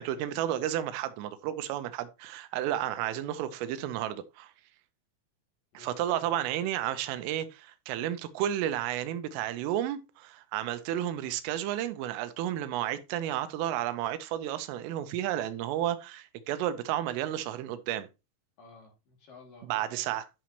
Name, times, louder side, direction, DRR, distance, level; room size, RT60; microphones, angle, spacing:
voice 1, 0.0-4.5 5.7-18.1 19.7-20.2, right 12 dB, 80° right, 3.2 m, -32 dB
voice 2, 2.6-2.9 5.7-6.3 18.6-20.0, left 4 dB, 50° left, 3.4 m, -54 dB
11.5 x 6.1 x 3.0 m
omnidirectional pair, 5.9 m